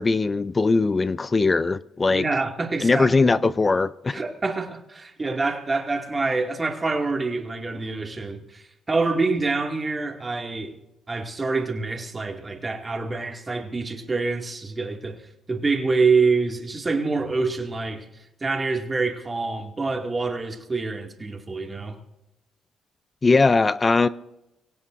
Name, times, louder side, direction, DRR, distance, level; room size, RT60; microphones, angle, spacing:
voice 1, 0.0-2.2 2.8-4.2 23.2-24.1, left 3 dB, 25° left, 0.5 m, -20 dB
voice 2, 2.1-3.1 4.1-10.8 11.1-18.1 18.4-22.0, right 3 dB, 25° right, 2.3 m, -26 dB
24.0 x 17.5 x 2.6 m
cardioid pair, 90°, 0 cm